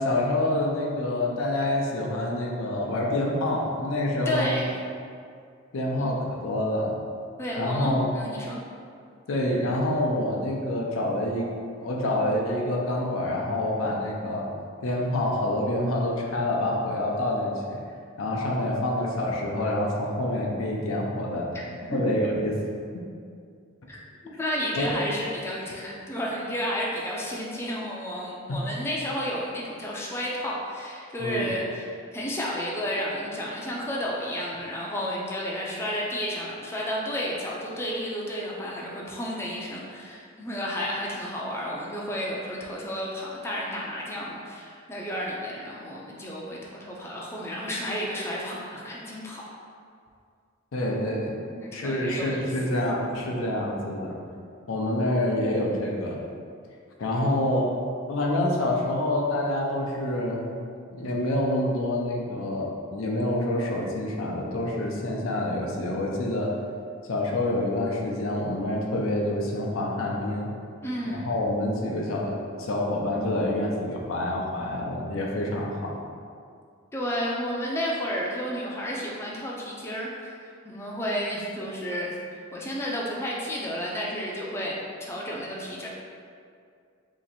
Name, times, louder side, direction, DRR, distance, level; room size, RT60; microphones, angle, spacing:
voice 1, 0.0-4.6 5.7-7.0 7.6-8.1 9.3-11.5 11.8-14.5 14.8-17.8 18.2-21.5 21.9-22.6 22.9-23.1 24.8-25.0 28.5-28.6 31.2-31.5 50.7-51.4 51.7-54.2 54.7-56.2 57.0-57.8 58.1-60.5 60.9-66.6 67.1-70.5 71.1-76.0, left 1 dB, 80° left, -1 dB, 0.5 m, -27 dB
voice 2, 4.3-4.7 6.0-6.1 7.4-8.6 21.9-22.0 23.9-49.4 51.6-52.5 70.8-71.3 76.9-80.3 80.6-82.2 82.5-84.7 85.1-85.9, equal, 15° left, -4 dB, 0.4 m, -32 dB
2.9 x 2.5 x 4.1 m, 2.2 s
head